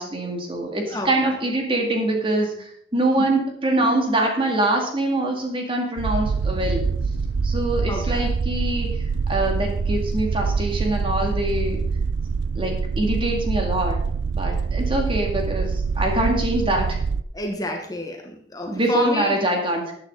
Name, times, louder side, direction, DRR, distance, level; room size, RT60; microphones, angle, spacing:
voice 1, 0.0-6.9 7.4-9.0 9.3-11.8 12.6-14.0 14.3-17.0 18.7-19.9, right 1 dB, 30° right, 2 dB, 2.2 m, -24 dB
sound 1, 6.0-17.2, right 5 dB, 80° right, 0.4 m, -25 dB
voice 2, 7.9-8.3 17.3-19.4, left 1 dB, 20° left, 2 dB, 1.2 m, -29 dB
14.0 x 9.0 x 3.8 m, 0.65 s
head